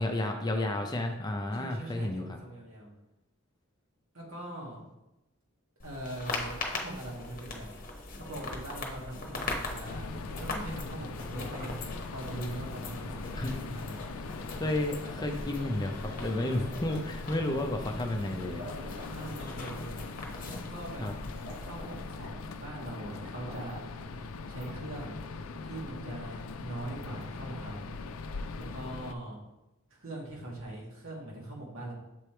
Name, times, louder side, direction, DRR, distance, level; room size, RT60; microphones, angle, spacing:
voice 1, 0.0-2.4 13.4-13.7 14.5-18.6 21.0-21.1, left 1 dB, 20° left, 3 dB, 0.5 m, -32 dB
voice 2, 1.5-2.9 4.1-4.8 5.8-7.7 8.1-10.1 10.4-14.0 19.1-20.0 20.4-21.1 21.3-23.8 24.5-25.2 25.6-27.8 28.6-29.4 29.9-31.9, right 1 dB, 75° right, -4 dB, 1.9 m, -41 dB
sound 1, 5.8-22.2, left 2 dB, 40° left, 0.9 m, -41 dB
sound 2, 9.8-29.1, left 3 dB, 80° left, 0.4 m, -41 dB
sound 3, 10.3-12.2 13.1-13.3 13.7-15.8 16.1-17.8 18.3-18.4 18.6-20.1 20.7-20.8 21.2-22.5 22.8-23.9 24.5-25.3, left 1 dB, 55° right, 1.4 m, -50 dB
6.9 x 3.3 x 4.4 m, 0.97 s
head